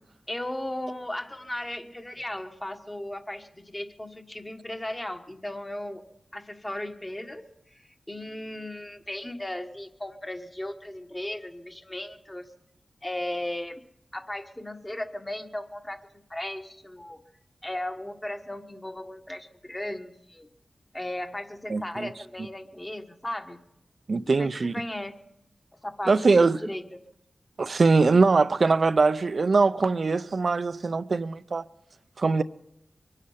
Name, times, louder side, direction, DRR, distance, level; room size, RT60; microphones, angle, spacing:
voice 1, 0.3-6.0 6.3-12.5 13.0-13.8 14.1-17.2 17.6-20.5 20.9-23.6 24.3-25.2 25.8-27.0, left 1 dB, 20° left, 1.5 m, -36 dB
voice 2, 21.7-22.1 24.1-24.8 26.1-26.6 27.6-31.6 32.2-32.4, right 4 dB, 65° right, 0.6 m, -22 dB
23.5 x 9.9 x 5.7 m
cardioid pair, 50°, 0 cm